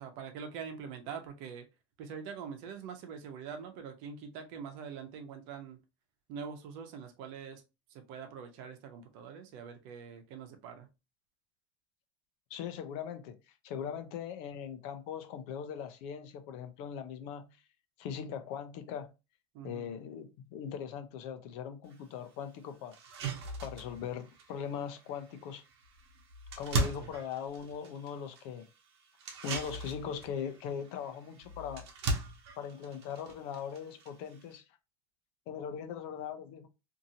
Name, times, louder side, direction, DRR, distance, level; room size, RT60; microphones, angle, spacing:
voice 1, 0.0-1.6 2.0-5.8 6.3-7.6 7.9-10.9 19.5-19.9 27.0-27.1, right 6 dB, 65° right, 0.8 m, -44 dB
voice 2, 12.5-17.6 18.0-19.1 19.6-23.0 23.6-25.6 26.6-28.7 29.4-31.9 32.6-34.6 35.5-36.7, left 8 dB, 65° left, 0.6 m, -40 dB
sound 1, 21.9-22.0 22.5-22.6 22.9-34.6, right 3 dB, 90° right, 0.8 m, -40 dB
2.7 x 2.6 x 2.7 m
supercardioid pair, 125°, 13 cm